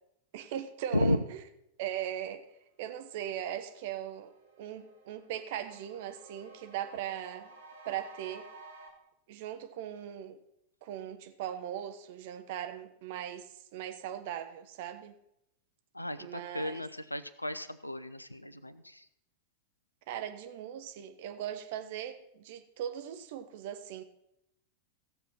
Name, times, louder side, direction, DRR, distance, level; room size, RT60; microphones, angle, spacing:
voice 1, 0.3-1.2 1.8-2.5 2.8-4.3 4.6-7.5 7.8-8.5 9.3-10.4 10.8-15.1 16.2-16.8 20.1-24.0, right 10 dB, 50° right, 8 dB, 1.2 m, -39 dB
sound 1, 3.1-3.2 3.5-8.9, right 3 dB, 70° right, 2.5 m, -54 dB
voice 2, 15.9-19.1, left 1 dB, 85° left, 14 dB, 0.6 m, -33 dB
16.0 x 6.9 x 5.7 m, 0.81 s
figure-of-eight pair, 90°, 0 cm